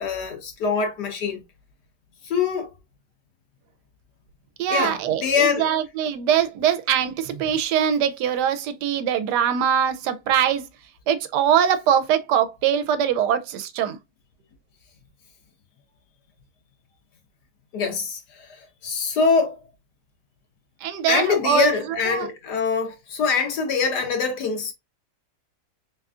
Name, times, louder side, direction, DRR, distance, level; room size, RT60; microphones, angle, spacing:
voice 1, 0.0-1.4 2.2-2.7 4.7-5.7 17.7-19.6 21.1-24.7, left 5 dB, 75° left, 1.6 m, -24 dB
voice 2, 4.6-10.7 11.1-14.0 20.8-22.3, right 9 dB, 80° right, 1.1 m, -22 dB
3.8 x 3.5 x 2.4 m
omnidirectional pair, 1.8 m